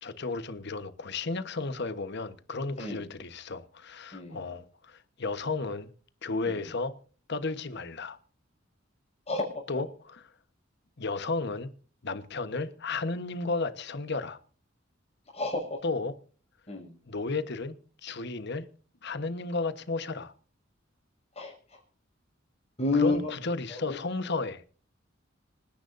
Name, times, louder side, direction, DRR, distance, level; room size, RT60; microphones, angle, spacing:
voice 1, 0.0-5.9 6.2-7.0 7.3-8.2 9.7-10.2 11.0-11.7 12.0-14.4 15.8-16.1 17.1-17.8 18.0-18.7 19.0-20.3 22.9-24.6, left 3 dB, 60° left, 1.2 m, -33 dB
voice 2, 4.1-4.4 6.4-6.6 9.3-9.5 15.3-15.8 16.7-16.9 21.4-21.8 22.8-23.3 23.7-24.0, left 3 dB, 35° left, 6.2 m, -30 dB
27.0 x 10.5 x 2.6 m
head